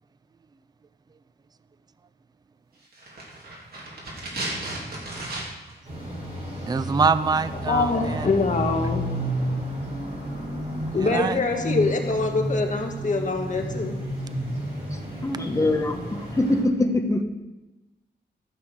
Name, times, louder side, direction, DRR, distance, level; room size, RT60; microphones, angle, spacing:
sound 1, 2.9-5.8 6.0-6.1, right 1 dB, 60° right, 3.0 m, -34 dB
sound 2, 5.8-16.6, right 1 dB, 40° right, 4.1 m, -31 dB
voice 1, 6.7-8.3 11.0-11.4, right 5 dB, 25° right, 0.4 m, -24 dB
voice 2, 7.7-9.1 10.9-14.0, left 3 dB, 45° left, 1.5 m, -24 dB
voice 3, 15.2-17.2, left 2 dB, 15° left, 1.2 m, -23 dB
14.5 x 6.2 x 6.1 m
wide cardioid pair, 145°, 18 cm